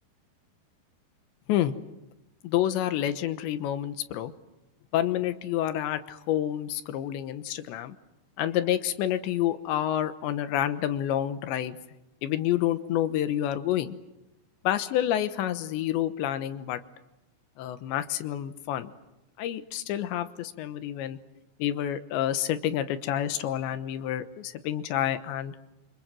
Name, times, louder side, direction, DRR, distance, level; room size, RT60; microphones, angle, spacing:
voice 1, 2.4-4.3 4.9-7.9 8.4-11.8 12.2-14.0 14.6-16.8 17.6-18.9 19.4-21.2 21.6-25.6, left 11 dB, 85° left, 11 dB, 3.4 m, -28 dB
27.5 x 25.5 x 7.7 m, 0.92 s
omnidirectional pair, 5.0 m